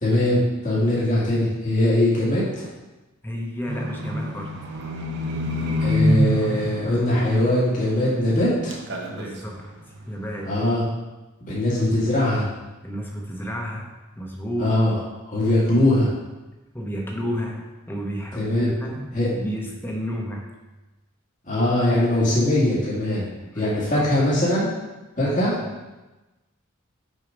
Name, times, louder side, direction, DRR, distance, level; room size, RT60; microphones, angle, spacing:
voice 1, 0.0-2.7 5.8-8.8 10.5-10.8 11.4-12.5 14.6-14.9 15.2-16.1 18.4-18.7 19.1-19.3 21.5-23.3 23.6-24.7 25.2-25.6, left 1 dB, 40° left, -7 dB, 2.0 m, -21 dB
voice 2, 3.2-4.6 9.1-9.7 10.1-10.6 12.8-13.9 14.2-14.8 16.7-20.5 23.4-24.1 25.2-25.4, equal, 10° left, -1 dB, 1.0 m, -31 dB
Livestock farm animals working animals, 3.7-8.5 8.7-9.4 9.9-10.0, equal, 55° right, 1.0 m, -26 dB
6.4 x 4.8 x 5.1 m, 1.1 s
head